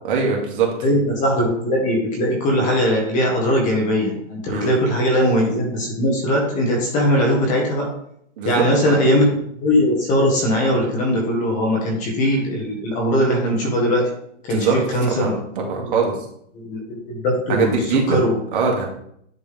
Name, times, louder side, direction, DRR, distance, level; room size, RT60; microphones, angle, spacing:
voice 1, 0.1-0.7 4.5-4.7 8.4-8.9 14.5-14.7 15.1-16.1 17.5-18.2 18.5-18.8, right 5 dB, 45° right, 0 dB, 2.0 m, -22 dB
voice 2, 0.8-7.9 8.4-9.3 9.6-14.0 14.4-15.4 15.8-16.0 16.5-18.4, equal, 20° left, -1 dB, 1.5 m, -20 dB
10.0 x 3.4 x 3.5 m, 0.70 s
hypercardioid pair, 160°, 38 cm